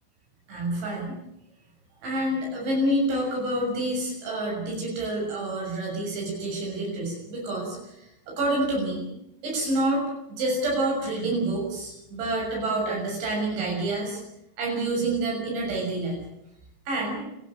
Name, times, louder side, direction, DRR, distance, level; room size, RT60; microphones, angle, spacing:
voice 1, 0.5-1.2 2.0-9.1 9.4-14.2 14.6-16.2 16.9-17.2, right 1 dB, 90° right, -2 dB, 9.1 m, -28 dB
30.0 x 13.0 x 8.9 m, 0.84 s
omnidirectional pair, 5.2 m